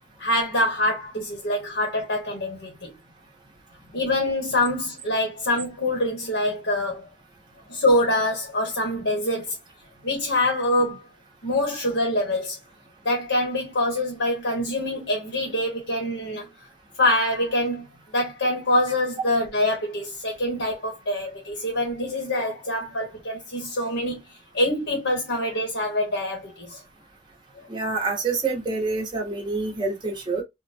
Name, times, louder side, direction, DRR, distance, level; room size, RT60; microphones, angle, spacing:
voice 1, 0.2-2.9 3.9-7.1 7.7-9.6 10.0-11.0 11.4-12.6 13.0-16.5 17.0-26.8 27.6-27.7, left 1 dB, 70° left, 1.1 m, -25 dB
voice 2, 27.7-30.4, right 3 dB, 25° right, 1.0 m, -27 dB
3.7 x 2.2 x 2.7 m
head